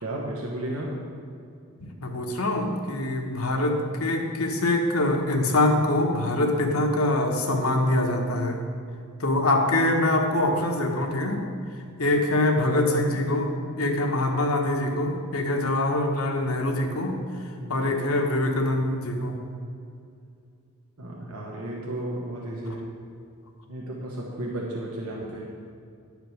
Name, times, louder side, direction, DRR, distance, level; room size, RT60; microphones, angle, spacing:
voice 1, 0.0-1.0 12.1-12.2 17.6-17.8 21.0-22.9 23.7-25.5, right 1 dB, 85° right, -3 dB, 1.2 m, -33 dB
voice 2, 1.8-8.6 9.2-11.5 12.0-17.2 17.7-19.4, left 1 dB, 75° left, 3 dB, 1.2 m, -24 dB
10.5 x 5.2 x 6.4 m, 2.5 s
head